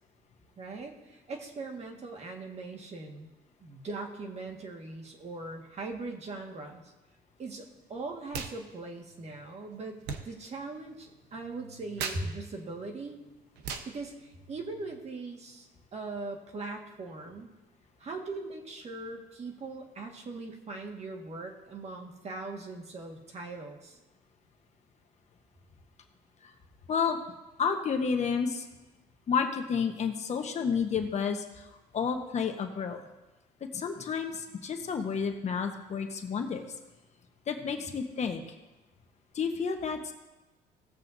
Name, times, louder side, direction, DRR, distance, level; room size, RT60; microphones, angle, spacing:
voice 1, 0.6-3.3 3.6-6.9 7.4-13.2 13.8-17.5 18.0-24.0, right 3 dB, 40° right, 1 dB, 1.7 m, -40 dB
sound 1, 8.3-8.6 8.8-15.0, right 5 dB, 85° right, 1.0 m, -42 dB
voice 2, 26.9-27.2 27.6-28.6 29.3-31.7 31.9-33.0 33.7-36.7 37.5-38.4 39.3-40.1, left 6 dB, 40° left, 4 dB, 1.1 m, -30 dB
18.0 x 7.4 x 2.7 m, 1.1 s
cardioid pair, 110°, 17 cm